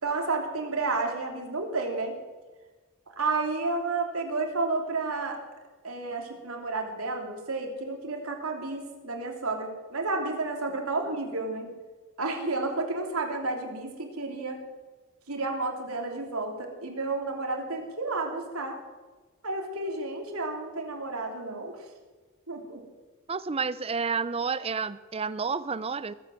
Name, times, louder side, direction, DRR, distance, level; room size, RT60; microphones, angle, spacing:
voice 1, 0.0-2.2 3.1-5.4 5.8-11.7 12.2-14.6 15.3-18.8 19.4-21.8 22.5-22.8, right 3 dB, 85° right, 2 dB, 3.3 m, -31 dB
voice 2, 23.3-26.1, right 5 dB, 30° right, 16 dB, 0.6 m, -30 dB
21.0 x 8.9 x 7.7 m, 1.3 s
head